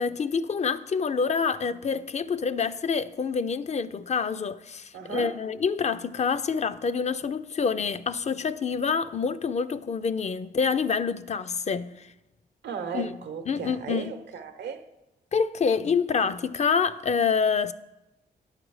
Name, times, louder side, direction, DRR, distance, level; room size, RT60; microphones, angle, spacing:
voice 1, 0.0-12.1 12.9-13.2 13.5-14.1 15.3-17.7, left 5 dB, 40° left, 0.4 m, -27 dB
voice 2, 4.9-5.4 12.6-14.9, right 6 dB, 80° right, 0.7 m, -35 dB
9.8 x 5.1 x 4.7 m
cardioid pair, 60°, 18 cm